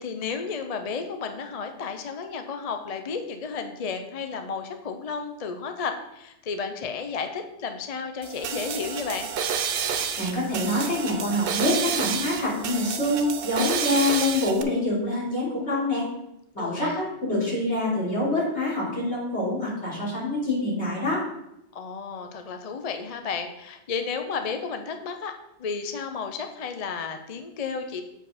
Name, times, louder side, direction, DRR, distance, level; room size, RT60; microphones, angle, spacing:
voice 1, 0.0-9.3 16.6-17.0 21.7-25.3 25.6-28.0, left 5 dB, 40° left, 6 dB, 0.6 m, -32 dB
sound 1, 8.2-14.6, right 7 dB, 60° right, 0.8 m, -30 dB
voice 2, 10.2-16.0 16.5-21.2, left 1 dB, 75° left, -7 dB, 3.5 m, -26 dB
7.4 x 4.7 x 4.9 m, 0.86 s
omnidirectional pair, 1.1 m